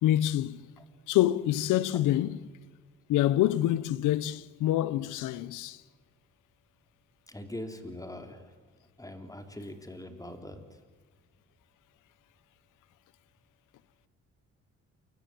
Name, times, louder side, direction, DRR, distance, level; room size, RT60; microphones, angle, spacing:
voice 1, 0.0-0.6 1.1-2.5 3.1-5.8, left 13 dB, 90° left, 0.9 m, -26 dB
voice 2, 7.3-8.5 9.0-10.8, left 1 dB, 10° left, 3.6 m, -42 dB
28.0 x 24.5 x 7.8 m
cardioid pair, 90°, 30 cm